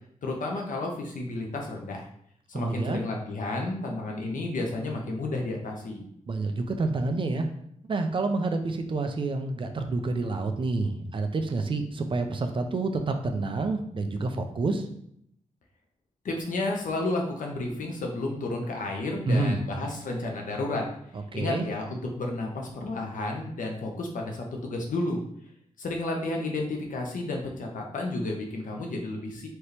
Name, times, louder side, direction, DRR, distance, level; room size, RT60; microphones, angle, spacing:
voice 1, 0.2-2.1 2.5-6.0 16.2-20.9 21.3-25.2 25.8-29.5, left 2 dB, 85° left, 1 dB, 0.9 m, -31 dB
voice 2, 2.5-3.0 6.3-7.5 7.9-14.8 19.3-19.6 21.3-21.7, right 3 dB, 40° right, 6 dB, 0.5 m, -28 dB
4.4 x 2.9 x 3.3 m, 0.70 s
wide cardioid pair, 165°, 13 cm